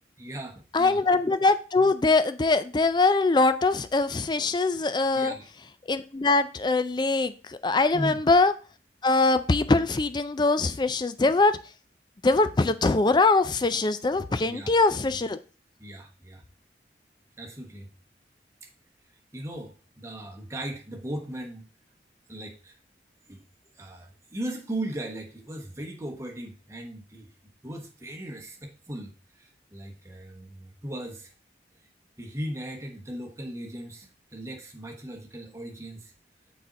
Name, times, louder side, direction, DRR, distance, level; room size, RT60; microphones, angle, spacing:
voice 1, 0.2-1.0 5.1-5.5 7.9-8.2 14.4-14.7 15.1-15.2 15.8-16.4 17.4-17.9 19.3-21.6 22.3-22.7 23.3-23.4 23.7-27.3 27.6-31.3 32.2-36.1, right 1 dB, 15° right, 1 dB, 1.1 m, -37 dB
voice 2, 0.7-5.3 5.9-8.5 9.0-11.6 12.2-15.4, left 3 dB, 25° left, 12 dB, 0.4 m, -22 dB
6.5 x 4.2 x 5.1 m, 0.35 s
head